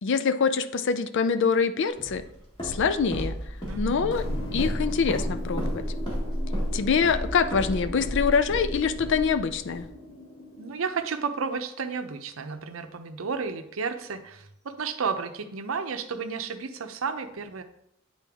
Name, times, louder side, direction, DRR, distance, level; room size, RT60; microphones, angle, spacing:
voice 1, 0.0-2.2 2.6-3.4 3.8-4.2 4.5-5.8 6.7-9.9, left 5 dB, 60° left, 11 dB, 0.4 m, -25 dB
Walk footsteps, 2.0-9.9, equal, 25° left, 1.9 m, -32 dB
voice 2, 3.6-4.2 10.6-17.6, right 5 dB, 75° right, 8 dB, 0.6 m, -32 dB
sound 1, 4.2-11.2, left 1 dB, 90° left, 1.2 m, -40 dB
8.4 x 4.0 x 3.5 m, 0.77 s
head